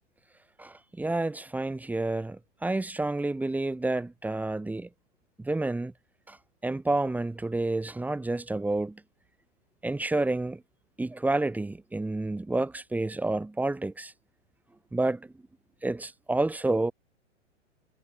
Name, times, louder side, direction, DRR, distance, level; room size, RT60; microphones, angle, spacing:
voice 1, 0.6-4.9 5.4-5.9 6.3-6.4 6.6-9.0 9.8-10.6 11.0-14.1 14.9-15.3 15.8-16.9, right 2 dB, 5° right, 1.8 m, -29 dB
figure-of-eight pair, 105°, 37 cm